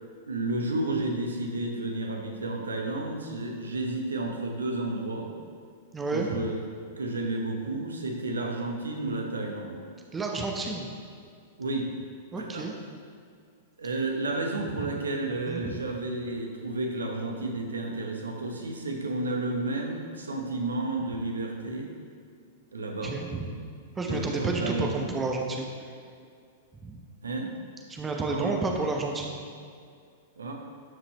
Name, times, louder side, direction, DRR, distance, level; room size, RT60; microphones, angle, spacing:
voice 1, 0.3-5.3 6.1-6.6 7.0-9.8 11.6-11.9 12.4-12.7 13.8-21.9 22.7-23.2 24.1-25.1 27.2-27.5 28.3-28.6 30.4-30.5, right 2 dB, 70° right, 2 dB, 1.3 m, -31 dB
voice 2, 5.9-6.4 10.1-10.9 12.3-12.7 14.7-14.9 15.5-15.8 23.0-23.5 24.0-25.9 26.7-27.0 27.9-29.4, right 3 dB, 15° right, 1 dB, 0.9 m, -31 dB
12.0 x 7.1 x 3.1 m, 2.3 s
figure-of-eight pair, 100°, 0 cm